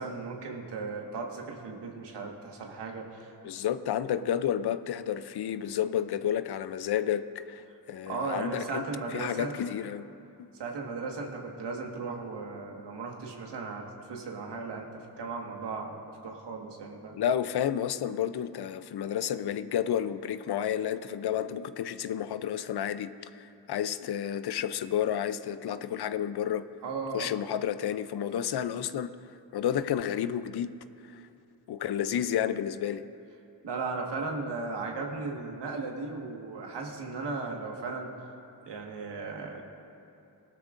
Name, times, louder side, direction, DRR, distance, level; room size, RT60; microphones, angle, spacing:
voice 1, 0.0-3.3 8.1-9.5 10.6-17.2 26.8-27.3 33.6-38.1 38.6-39.6, right 4 dB, 80° right, 0 dB, 1.7 m, -36 dB
voice 2, 3.4-8.8 9.1-10.1 17.1-26.7 27.1-29.2 29.5-30.8 31.1-31.2 31.7-33.1, left 10 dB, 65° left, 13 dB, 0.6 m, -31 dB
18.0 x 12.5 x 2.6 m, 2.8 s
cardioid pair, 60°, 41 cm